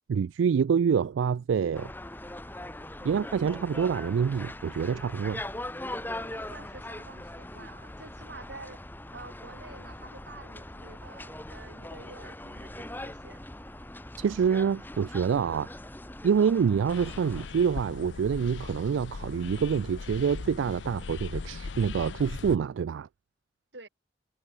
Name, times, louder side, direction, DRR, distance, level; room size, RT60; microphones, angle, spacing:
voice 1, 0.1-1.9 3.0-5.4 14.2-15.7 16.2-23.1, right 6 dB, 85° right, 0.3 m, -26 dB
sound 1, 1.7-17.5, left 1 dB, 10° left, 1.9 m, -41 dB
voice 2, 3.0-3.4 6.0-8.8 9.1-13.4 23.7-23.9, right 3 dB, 65° right, 5.0 m, -49 dB
sound 2, 16.9-22.6, left 4 dB, 75° left, 0.6 m, -39 dB
head